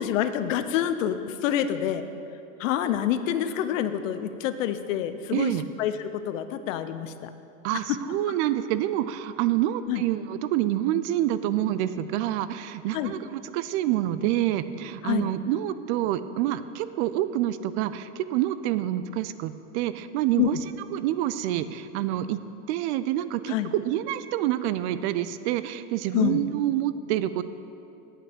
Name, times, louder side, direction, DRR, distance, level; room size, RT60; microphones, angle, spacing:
voice 1, 0.0-2.0 2.6-7.3 9.9-10.0 12.9-13.1 15.0-15.3 20.4-20.5 23.5-23.7 26.1-26.4, left 11 dB, 70° left, 11 dB, 0.7 m, -27 dB
voice 2, 5.3-5.6 7.6-20.6 20.9-22.4 22.7-27.4, right 13 dB, 55° right, 13 dB, 0.5 m, -27 dB
8.5 x 5.8 x 6.7 m, 2.7 s
hypercardioid pair, 110°, 40 cm